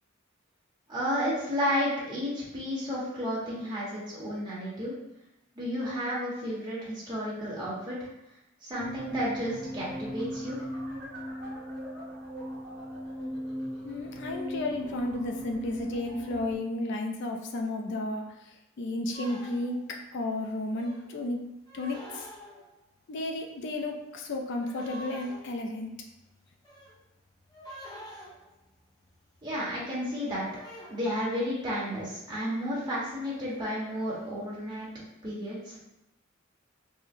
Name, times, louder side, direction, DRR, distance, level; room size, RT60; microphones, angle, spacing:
voice 1, 0.9-4.9 5.5-8.1 8.6-10.6 29.4-30.5 30.9-34.9 35.2-35.8, equal, 20° right, -8 dB, 1.1 m, -32 dB
sound 1, 8.7-16.6, equal, 60° right, 1.2 m, -38 dB
voice 2, 13.8-21.4 21.7-22.3 23.1-25.9, left 2 dB, 60° left, 2 dB, 0.3 m, -33 dB
sound 2, 19.1-20.0 20.8-21.2 21.7-22.9 23.2-24.2 24.6-31.7 32.6-33.0 33.2-34.7, right 1 dB, 20° left, 0.7 m, -48 dB
3.6 x 2.0 x 2.6 m, 0.87 s
head